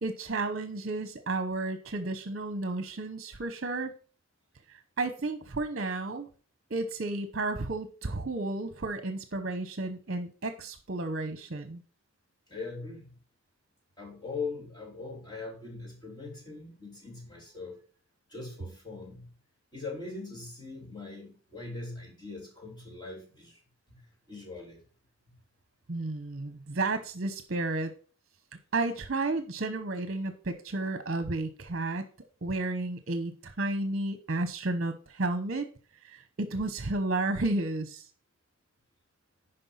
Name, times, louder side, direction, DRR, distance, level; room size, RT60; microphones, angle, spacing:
voice 1, 0.0-3.9 4.7-6.3 6.7-11.8 25.9-27.9 28.7-32.1 32.4-35.6 36.0-38.1, right 2 dB, 50° right, 0.9 m, -32 dB
voice 2, 12.5-13.1 14.0-17.8 18.3-19.3 19.7-23.6 23.9-24.0 24.3-24.8, left 3 dB, 20° left, 3.1 m, -41 dB
9.8 x 5.4 x 5.7 m
head